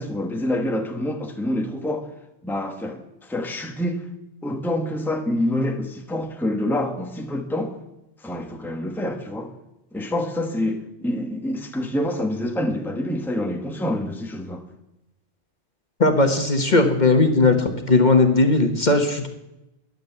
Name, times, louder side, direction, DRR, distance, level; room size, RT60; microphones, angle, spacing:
voice 1, 0.0-2.1 2.4-4.0 4.4-7.7 8.2-9.5 9.9-14.6 16.7-16.9, left 1 dB, ahead, 1.3 m, -27 dB
voice 2, 16.0-19.3, left 3 dB, 40° left, 1.6 m, -18 dB
13.0 x 11.0 x 8.0 m
omnidirectional pair, 1.2 m